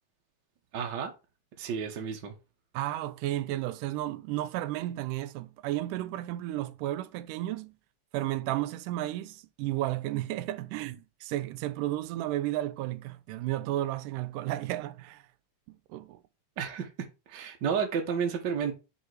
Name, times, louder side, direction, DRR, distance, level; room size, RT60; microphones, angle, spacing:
voice 1, 0.7-1.1 1.6-2.3 16.6-16.9 17.3-18.7, right 7 dB, 65° right, 1.1 m, -31 dB
voice 2, 2.7-7.7 8.1-15.2 15.7-16.2, right 15 dB, 85° right, 2.2 m, -33 dB
5.4 x 4.3 x 4.7 m
omnidirectional pair, 3.7 m